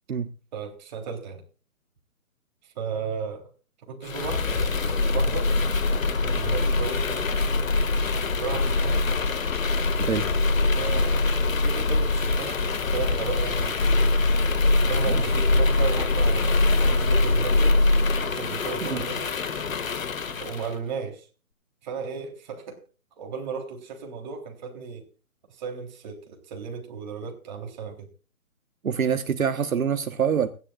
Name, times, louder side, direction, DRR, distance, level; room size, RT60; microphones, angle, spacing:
voice 1, 0.5-1.4 2.6-3.5 3.9-5.5 6.2-7.3 8.3-9.0 10.8-11.3 11.6-14.1 14.9-17.8 18.3-19.3 20.4-21.3 21.8-22.8 23.2-25.0 25.5-28.1, right 5 dB, 30° right, 3.5 m, -35 dB
sound 1, 4.0-20.7, left 2 dB, 65° left, 2.0 m, -23 dB
voice 2, 28.8-30.5, right 7 dB, 70° right, 1.3 m, -25 dB
29.5 x 11.0 x 2.4 m
hypercardioid pair, 160°, 43 cm